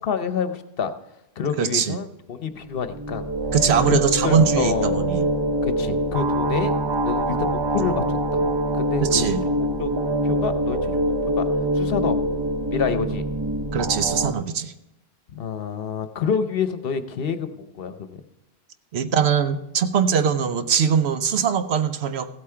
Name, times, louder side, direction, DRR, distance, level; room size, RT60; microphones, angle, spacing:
voice 1, 0.0-0.9 1.4-3.2 3.9-5.1 5.6-6.7 7.0-8.5 8.8-9.2 9.8-9.9 10.2-11.4 11.7-12.2 12.7-13.3 15.3-18.2, left 6 dB, 65° left, 10 dB, 0.9 m, -27 dB
voice 2, 1.6-2.0 3.5-5.3 9.0-9.4 13.7-14.7 18.9-22.3, right 7 dB, 85° right, 10 dB, 1.0 m, -21 dB
sound 1, 2.7-14.3, right 1 dB, 35° right, 0.4 m, -24 dB
15.0 x 8.5 x 4.5 m, 0.92 s
omnidirectional pair, 1.1 m